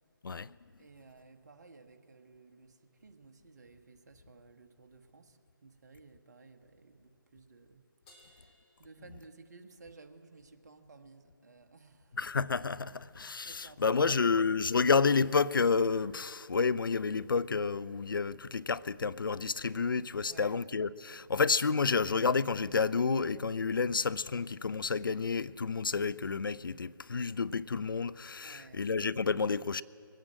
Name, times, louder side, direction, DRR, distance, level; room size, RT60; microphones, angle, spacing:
voice 1, 0.2-0.6 12.2-29.8, left 5 dB, 70° left, 0.4 m, -30 dB
voice 2, 0.8-7.8 8.1-12.2 12.8-14.3 20.2-20.6 28.4-28.9, right 4 dB, 50° right, 1.2 m, -56 dB
Crash cymbal, 8.1-9.8, left 1 dB, 25° left, 3.0 m, -63 dB
21.5 x 9.0 x 7.4 m
figure-of-eight pair, 150°, 12 cm